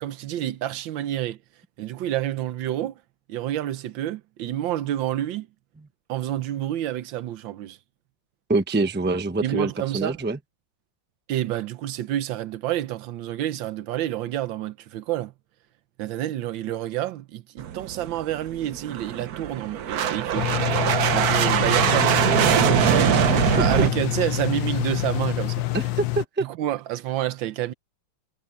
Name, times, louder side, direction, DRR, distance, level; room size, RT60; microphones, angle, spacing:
voice 1, 0.0-1.4 1.8-3.0 3.3-5.5 6.1-7.8 9.4-10.2 11.3-15.3 16.0-20.6 21.1-22.2 22.7-23.0 23.5-25.7 26.4-27.7, right 13 dB, 80° right, 1.5 m, -28 dB
voice 2, 8.5-10.4 23.1-23.2 23.6-23.9 25.7-26.5, right 3 dB, 10° right, 0.5 m, -25 dB
sound 1, 17.6-23.9, right 10 dB, 60° right, 1.3 m, -22 dB
sound 2, 20.3-26.2, left 18 dB, 85° left, 1.4 m, -26 dB
omnidirectional pair, 2.1 m